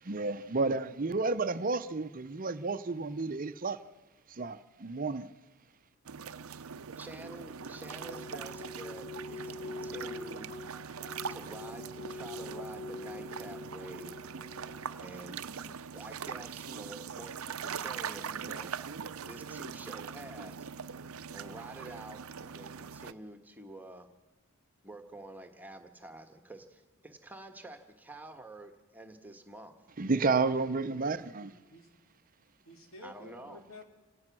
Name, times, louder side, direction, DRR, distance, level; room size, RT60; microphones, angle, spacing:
voice 1, 0.0-3.8 4.3-5.3 30.0-31.5, right 3 dB, 40° right, 0.7 m, -31 dB
sound 1, 6.1-23.1, right 6 dB, 80° right, 0.7 m, -42 dB
voice 2, 7.0-10.5 11.3-14.2 15.0-18.9 19.2-20.7 21.3-24.1 24.8-29.8 33.0-33.6, right 2 dB, 10° right, 1.5 m, -48 dB
sound 2, 7.1-15.0, left 3 dB, 35° left, 3.3 m, -45 dB
voice 3, 31.4-31.9 32.7-33.8, left 2 dB, 75° left, 3.5 m, -51 dB
28.0 x 17.5 x 6.1 m
head